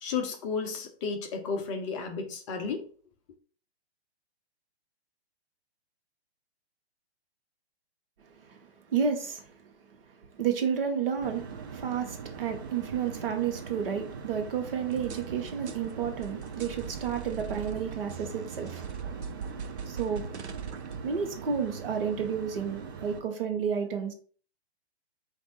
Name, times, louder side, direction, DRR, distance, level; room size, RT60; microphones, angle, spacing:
voice 1, 0.0-2.8, left 5 dB, 30° left, 0.6 m, -33 dB
voice 2, 8.9-9.7 10.3-18.9 19.9-20.2 21.0-24.1, right 7 dB, 55° right, 1.0 m, -31 dB
sound 1, 11.2-23.2, right 6 dB, 20° right, 0.3 m, -42 dB
sound 2, 14.9-21.0, right 6 dB, 80° right, 0.6 m, -41 dB
4.6 x 2.6 x 4.0 m
figure-of-eight pair, 120°, 33 cm